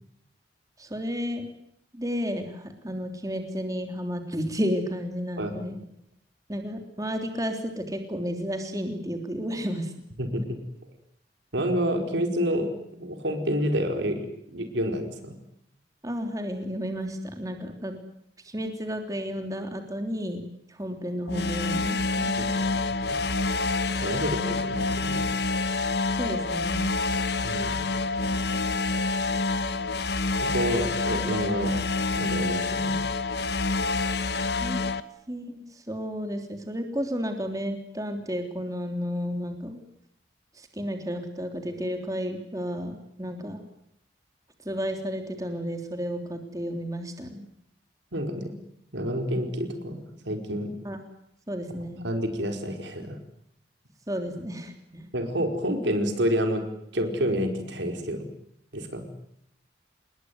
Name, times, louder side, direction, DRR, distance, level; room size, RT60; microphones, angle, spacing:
voice 1, 0.8-1.5 1.9-5.8 6.5-9.9 16.0-17.9 18.4-20.4 20.8-22.8 26.2-26.9 34.6-34.8 35.3-39.8 40.6-43.6 44.6-47.4 50.8-51.0 51.5-52.0 54.1-55.0, equal, 20° right, 5 dB, 3.3 m, -32 dB
voice 2, 10.2-10.6 11.5-15.4 22.4-23.2 24.0-25.3 27.4-27.8 30.4-31.7 32.2-33.0 48.1-48.5 48.9-50.7 52.0-53.2 55.1-56.6 56.9-58.3 58.7-59.1, equal, 80° right, 5 dB, 4.9 m, -29 dB
sound 1, 21.3-35.0, left 3 dB, 65° left, 1.4 m, -27 dB
28.5 x 21.0 x 9.5 m, 0.75 s
head